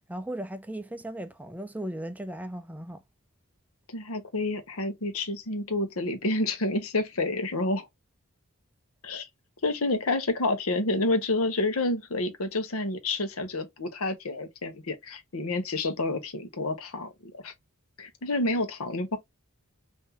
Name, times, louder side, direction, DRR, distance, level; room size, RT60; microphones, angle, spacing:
voice 1, 0.1-3.0, right 1 dB, 5° right, 0.4 m, -36 dB
voice 2, 3.9-7.9 9.0-9.3 9.6-17.5 18.0-19.2, left 2 dB, 75° left, 1.0 m, -29 dB
5.7 x 2.7 x 2.8 m
head